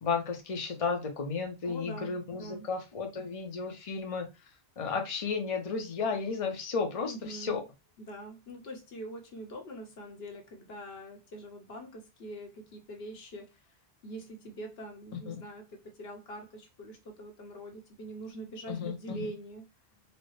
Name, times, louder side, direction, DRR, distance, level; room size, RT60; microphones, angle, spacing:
voice 1, 0.0-4.3 4.8-7.6 15.3-15.4 18.7-19.2, left 5 dB, 40° left, 0.7 m, -33 dB
voice 2, 1.6-2.7 7.0-7.6 8.0-13.8 14.0-19.6, right 1 dB, 70° left, 1.1 m, -44 dB
4.1 x 2.1 x 3.1 m
omnidirectional pair, 1.1 m